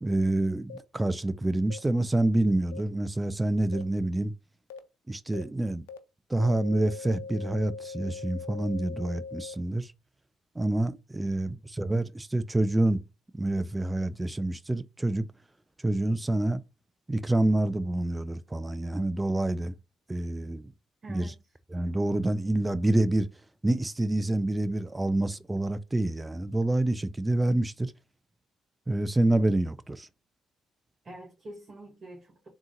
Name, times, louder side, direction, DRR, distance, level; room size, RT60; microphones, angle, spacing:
voice 1, 0.0-4.3 5.1-5.8 6.3-9.9 10.6-13.0 13.4-15.3 15.8-16.6 17.1-19.7 20.1-20.7 21.1-21.3 21.7-23.3 23.6-27.9 28.9-30.1, right 1 dB, 15° right, 0.5 m, -27 dB
sound 1, 0.7-0.8 1.7-1.8 2.7-2.8 3.7-3.8 4.7-4.8 5.3-5.4 5.9-6.0 6.4-9.5, left 5 dB, 85° left, 0.4 m, -41 dB
voice 2, 11.2-11.6 21.0-21.5 31.0-32.5, right 1 dB, 35° right, 1.9 m, -47 dB
3.6 x 2.9 x 3.7 m
hypercardioid pair, 50°, 0 cm